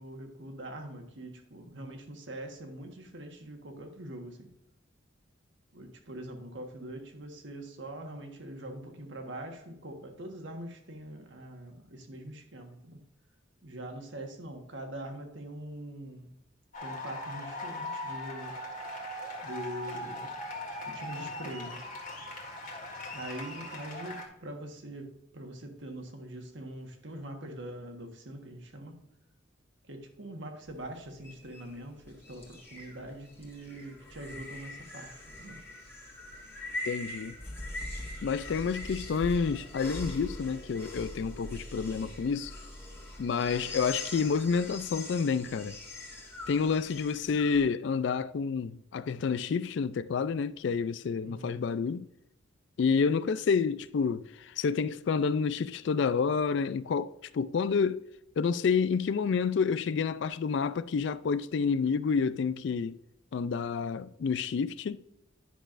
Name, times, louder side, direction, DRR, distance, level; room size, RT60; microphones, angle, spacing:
voice 1, 0.0-4.5 5.7-13.0 13.6-16.3 16.8-18.6 19.4-20.4 20.9-21.8 23.1-29.0 29.9-35.6 51.2-51.6, right 1 dB, 65° right, 1.4 m, -43 dB
sound 1, 16.7-24.3, left 1 dB, 40° left, 1.8 m, -40 dB
sound 2, 30.7-47.6, left 1 dB, 10° left, 1.7 m, -42 dB
voice 2, 36.9-37.3 38.2-42.5 43.2-45.8 46.5-52.1 52.8-58.0 58.4-63.0 63.3-65.0, left 5 dB, 60° left, 0.3 m, -29 dB
10.5 x 6.1 x 2.5 m
head